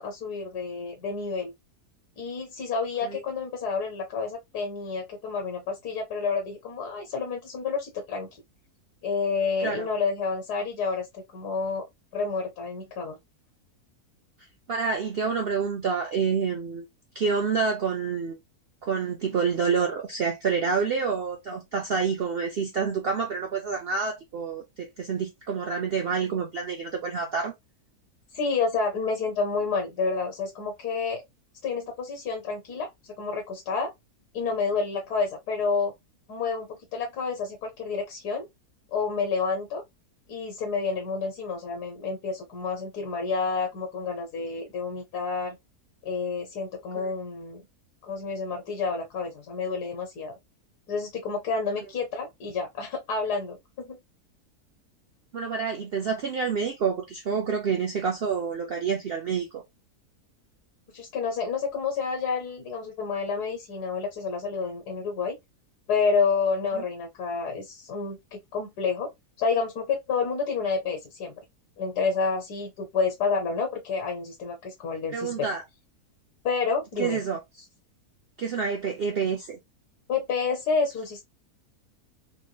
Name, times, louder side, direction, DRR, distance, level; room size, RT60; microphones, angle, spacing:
voice 1, 0.0-1.5 2.2-8.4 9.0-11.8 12.1-13.2 28.3-31.2 31.6-32.9 33.2-33.9 34.3-35.9 36.3-38.5 38.9-39.8 40.3-45.6 46.0-47.6 48.0-50.3 50.9-54.0 60.9-65.4 65.9-69.1 69.4-71.3 71.8-75.5 76.4-77.2 80.1-81.2, left 5 dB, 90° left, 1.5 m, -29 dB
voice 2, 14.7-16.9 17.1-18.4 18.8-27.5 47.0-47.1 55.3-59.6 66.7-66.8 75.1-75.6 77.0-77.4 78.4-79.6, right 5 dB, 60° right, 0.6 m, -28 dB
3.4 x 3.1 x 2.2 m
omnidirectional pair, 1.6 m